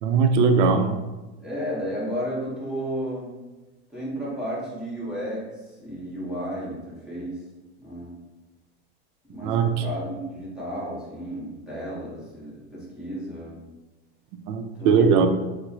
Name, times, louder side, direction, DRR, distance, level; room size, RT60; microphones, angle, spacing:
voice 1, 0.0-0.9 9.4-9.7 14.4-15.3, right 5 dB, 55° right, 6 dB, 0.5 m, -19 dB
voice 2, 1.4-3.3 3.9-5.4 5.8-7.4 7.8-8.1 9.3-13.5 14.8-15.3, equal, ahead, -9 dB, 1.0 m, -33 dB
4.4 x 2.0 x 2.8 m, 1.1 s
supercardioid pair, 135°, 33 cm